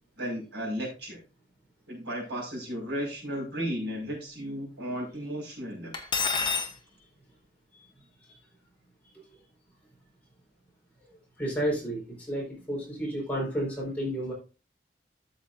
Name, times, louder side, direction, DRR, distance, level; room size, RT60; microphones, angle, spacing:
voice 1, 0.2-1.2 1.9-5.9, equal, 75° right, -1 dB, 5.3 m, -34 dB
Cutlery silverware, 5.9-6.7, left 5 dB, 25° left, 1.1 m, -27 dB
voice 2, 11.4-14.3, right 1 dB, 10° left, -4 dB, 4.6 m, -31 dB
13.0 x 7.3 x 2.6 m, 0.31 s
head